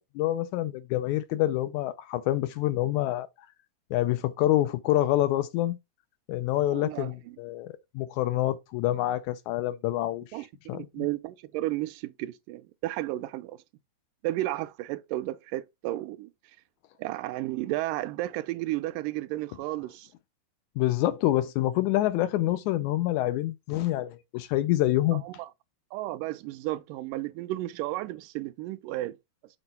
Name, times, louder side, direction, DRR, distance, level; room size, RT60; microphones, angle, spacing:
voice 1, 0.0-3.3 3.9-5.8 6.3-10.3 10.7-11.1 20.8-25.2, left 15 dB, 80° left, 1.7 m, -27 dB
voice 2, 6.7-7.4 10.3-13.6 14.2-16.3 17.0-20.1 25.1-25.5 25.9-29.2, right 16 dB, 85° right, 2.2 m, -33 dB
6.7 x 4.3 x 4.1 m
omnidirectional pair, 3.8 m